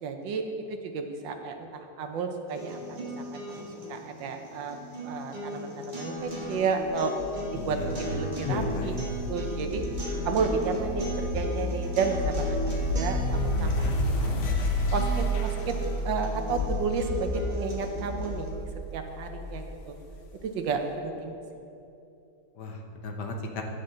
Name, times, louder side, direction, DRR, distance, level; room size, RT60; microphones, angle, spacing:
voice 1, 0.0-4.7 5.0-8.9 9.3-9.8 10.2-13.9 14.2-14.4 14.9-15.8 16.0-18.5 18.9-19.9 20.4-21.4, right 4 dB, 80° right, 5 dB, 1.5 m, -32 dB
sound 1, 2.5-18.5, equal, 25° right, 1.4 m, -38 dB
sound 2, 7.2-20.4, left 1 dB, 50° left, 1.0 m, -31 dB
voice 2, 7.5-9.1 13.6-13.9 22.5-23.6, left 2 dB, 65° left, 2 dB, 1.4 m, -34 dB
11.0 x 7.8 x 3.8 m, 2.8 s
omnidirectional pair, 2.0 m